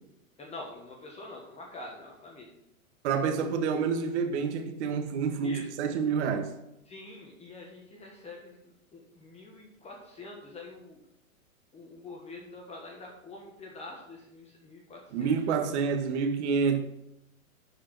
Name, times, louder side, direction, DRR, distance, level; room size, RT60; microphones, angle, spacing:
voice 1, 0.4-2.5 5.4-5.7 6.8-11.0 11.7-15.3, left 2 dB, 15° left, 1.4 m, -45 dB
voice 2, 3.0-6.5 15.1-16.8, right 6 dB, 50° right, 1.7 m, -28 dB
11.5 x 5.0 x 6.0 m
hypercardioid pair, 140°, 42 cm